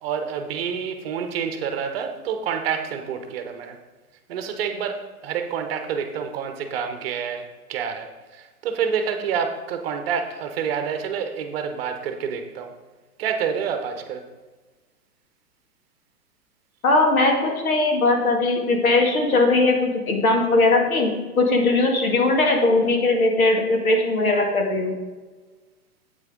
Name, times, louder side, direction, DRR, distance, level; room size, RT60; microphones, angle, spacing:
voice 1, 0.0-3.8 4.3-8.1 8.6-12.7 13.2-14.2, right 7 dB, 40° right, 7 dB, 1.0 m, -28 dB
voice 2, 16.8-21.1 21.4-25.0, left 2 dB, 65° left, 2 dB, 2.0 m, -19 dB
8.9 x 8.3 x 3.8 m, 1.3 s
figure-of-eight pair, 110°, 46 cm